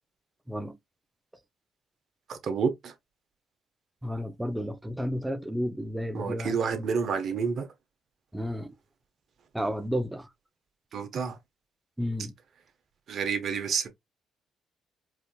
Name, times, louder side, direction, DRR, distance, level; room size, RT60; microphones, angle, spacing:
voice 1, 2.3-2.9 6.1-7.7 10.9-11.4 13.1-13.9, right 6 dB, 60° right, 1.1 m, -29 dB
voice 2, 4.0-6.9 8.3-8.7 9.5-10.3 12.0-12.3, equal, 10° right, 0.6 m, -32 dB
4.8 x 2.9 x 2.3 m
cardioid pair, 75°, 0 cm